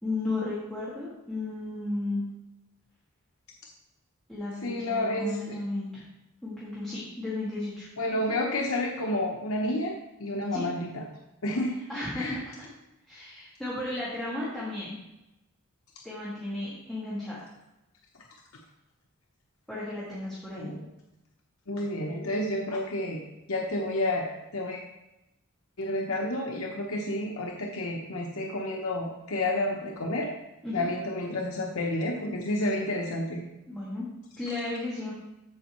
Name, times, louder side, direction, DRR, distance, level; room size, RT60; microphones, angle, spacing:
voice 1, 0.0-2.2 4.3-6.0 6.4-7.9 10.5-10.6 11.9-12.7 13.1-14.9 16.0-17.5 19.7-20.7 30.6-30.9 33.7-34.1 34.4-35.1, left 2 dB, ahead, -10 dB, 2.0 m, -34 dB
voice 2, 4.6-5.6 8.0-11.0 11.4-11.8 12.1-12.4 20.6-20.8 21.7-23.2 23.5-24.8 25.8-30.3 30.7-33.4, left 1 dB, 70° left, 0 dB, 1.0 m, -30 dB
14.0 x 5.2 x 3.1 m, 0.93 s
head